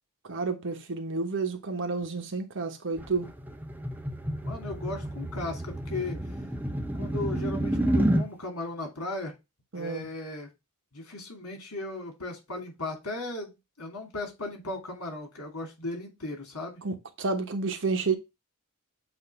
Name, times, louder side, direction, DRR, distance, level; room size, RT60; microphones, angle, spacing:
voice 1, 0.2-3.3 9.7-10.1 16.8-18.2, right 4 dB, 60° right, 1.1 m, -30 dB
sound 1, 3.0-8.3, right 1 dB, 10° right, 0.7 m, -29 dB
voice 2, 4.4-6.2 6.9-9.3 9.7-10.5 10.9-16.8, left 2 dB, 80° left, 2.7 m, -36 dB
7.9 x 2.8 x 5.4 m
head